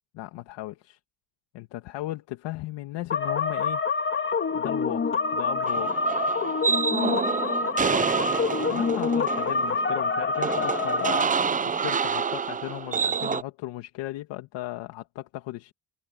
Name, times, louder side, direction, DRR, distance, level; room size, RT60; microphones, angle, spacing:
voice 1, 0.1-1.0 1.5-3.8 4.5-6.1 8.6-15.7, left 16 dB, 90° left, 2.1 m, -36 dB
sound 1, 3.1-11.3, left 4 dB, 30° left, 2.0 m, -26 dB
sound 2, 5.7-13.4, right 6 dB, 20° right, 0.6 m, -28 dB
cardioid pair, 130°, 42 cm